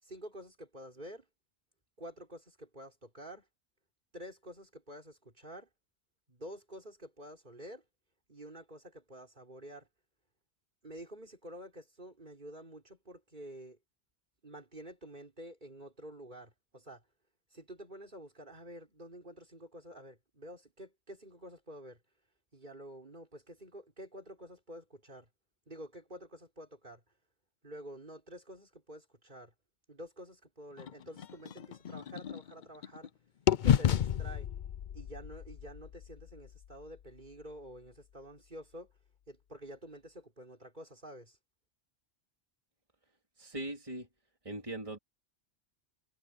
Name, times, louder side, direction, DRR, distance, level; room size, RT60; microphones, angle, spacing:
voice 1, 0.0-1.3 2.0-3.5 4.1-5.7 6.3-7.8 8.3-9.9 10.8-13.8 14.4-17.0 17.5-22.0 22.5-25.3 25.7-27.0 27.6-29.5 29.9-33.1 33.6-34.5 34.9-38.9 39.3-41.4, equal, 45° right, 4.9 m, -49 dB
sound 1, 30.8-33.1 33.5-37.4, left 9 dB, 55° left, 0.6 m, -32 dB
voice 2, 43.4-44.1 44.4-45.0, right 1 dB, 30° right, 3.5 m, -40 dB
omnidirectional pair, 1.1 m